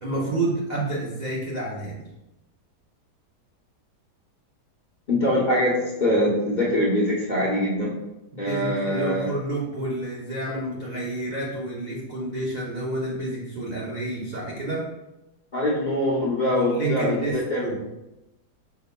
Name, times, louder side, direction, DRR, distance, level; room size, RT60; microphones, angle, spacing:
voice 1, 0.0-2.1 8.3-14.9 16.5-17.8, right 2 dB, 75° right, -4 dB, 0.4 m, -29 dB
voice 2, 5.1-7.9 8.4-9.3 15.5-17.7, left 1 dB, 40° left, -5 dB, 0.7 m, -23 dB
5.3 x 4.5 x 2.2 m, 0.96 s
omnidirectional pair, 1.8 m